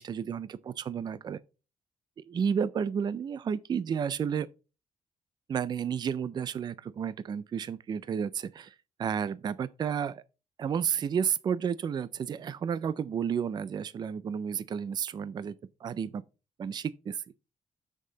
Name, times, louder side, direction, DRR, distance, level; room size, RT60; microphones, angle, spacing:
voice 1, 0.0-1.4 2.3-4.5 5.5-8.7 9.0-10.2 10.6-15.6 15.8-16.2 16.6-17.2, right 7 dB, 35° right, 0.4 m, -31 dB
7.6 x 6.4 x 3.9 m
wide cardioid pair, 180°, 13 cm